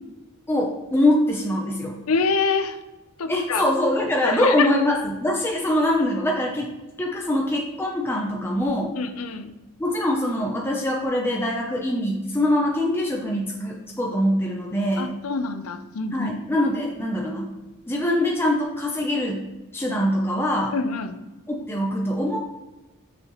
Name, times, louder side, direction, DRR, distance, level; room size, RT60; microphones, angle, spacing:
voice 1, 0.5-2.0 3.3-6.7 7.0-9.0 9.8-15.1 16.1-17.5 17.9-19.5 19.7-20.7 21.5-22.4, left 1 dB, 10° left, -2 dB, 0.6 m, -23 dB
voice 2, 2.1-2.8 3.2-3.6 4.3-4.7 9.0-9.5 15.0-16.4 20.7-21.2, left 4 dB, 80° left, 10 dB, 0.6 m, -25 dB
6.5 x 6.0 x 3.0 m, 1.1 s
head